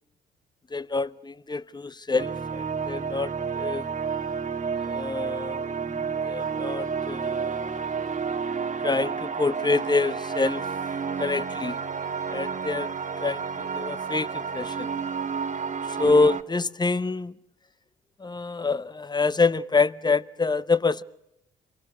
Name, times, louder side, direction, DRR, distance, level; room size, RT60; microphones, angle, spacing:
voice 1, 0.7-3.9 4.9-5.8 6.2-7.7 8.8-10.6 11.2-11.8 12.3-12.9 13.2-14.9 15.9-17.4 18.2-21.0, left 3 dB, 20° left, 0.8 m, -26 dB
sound 1, 2.2-16.4, right 6 dB, 35° right, 1.6 m, -30 dB
27.5 x 22.5 x 6.4 m
hypercardioid pair, 55°, 21 cm